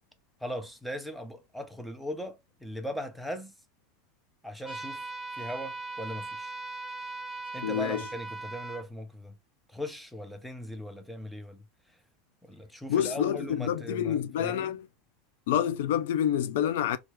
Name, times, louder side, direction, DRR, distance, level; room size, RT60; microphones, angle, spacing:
voice 1, 0.4-3.5 4.4-5.1 5.3-6.5 7.5-9.3 9.7-11.6 12.4-14.7, equal, ahead, 0.6 m, -39 dB
sound 1, 4.6-8.8, right 3 dB, 15° left, 1.2 m, -39 dB
voice 2, 7.6-8.0 12.9-14.9 15.5-17.0, left 10 dB, 80° left, 0.4 m, -28 dB
3.3 x 2.4 x 3.0 m
supercardioid pair, 130°, 0 cm